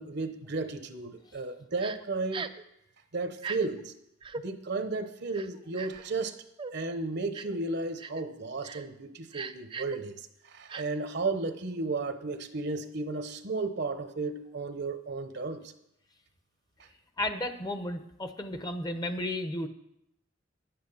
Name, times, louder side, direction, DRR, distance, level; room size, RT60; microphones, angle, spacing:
voice 1, 0.0-2.5 3.1-3.9 4.4-6.3 6.7-15.6, right 3 dB, 60° right, 9 dB, 0.9 m, -34 dB
Crying sobbing, 1.8-2.0 2.3-2.6 3.4-3.6 4.2-4.4 5.3-6.0 6.6-6.7 7.3-7.6 8.0-8.2 8.6-8.8 9.3-10.0 10.7-10.8, right 5 dB, 25° right, 0.4 m, -39 dB
voice 2, 17.2-19.7, left 1 dB, 20° left, 8 dB, 0.7 m, -33 dB
10.5 x 8.7 x 5.7 m, 0.80 s
head